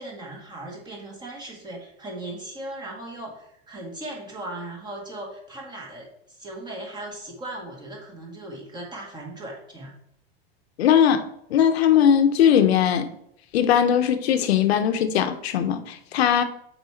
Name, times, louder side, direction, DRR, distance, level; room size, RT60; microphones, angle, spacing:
voice 1, 0.0-9.9, right 1 dB, 15° right, 1.6 m, -38 dB
voice 2, 10.8-13.1 13.5-16.4, left 9 dB, 80° left, 0.9 m, -20 dB
6.4 x 4.9 x 4.3 m
supercardioid pair, 150°, 31 cm